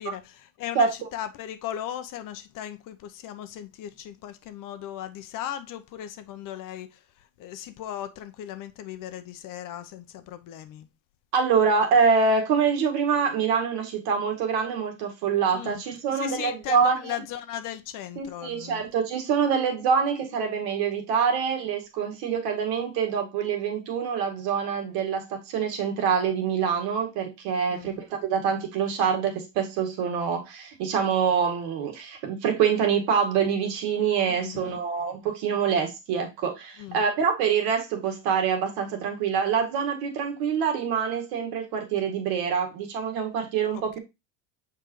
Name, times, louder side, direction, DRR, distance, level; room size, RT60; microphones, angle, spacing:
voice 1, 0.0-6.9 7.4-10.9 15.5-15.7 16.1-18.8 27.7-27.9 34.3-34.6 36.8-37.0, left 11 dB, 50° left, 0.9 m, -37 dB
voice 2, 11.3-17.2 18.2-44.0, right 6 dB, 70° right, 2.0 m, -25 dB
6.9 x 4.8 x 3.2 m
supercardioid pair, 115°, 40 cm